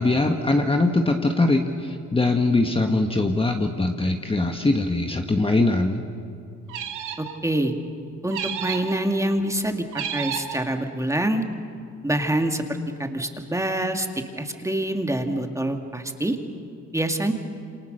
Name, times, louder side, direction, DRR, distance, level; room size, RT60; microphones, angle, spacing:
voice 1, 0.0-6.0, left 2 dB, 20° left, 4 dB, 1.5 m, -22 dB
sound 1, 6.7-7.4 8.3-9.0 9.9-10.6, right 9 dB, 85° right, 2.1 m, -31 dB
voice 2, 7.2-7.7 8.2-11.4 12.0-12.6 13.0-14.1 14.4-16.4 16.9-17.3, right 1 dB, 10° right, 5 dB, 2.2 m, -25 dB
28.0 x 26.5 x 6.7 m, 2.5 s
cardioid pair, 90°, 30 cm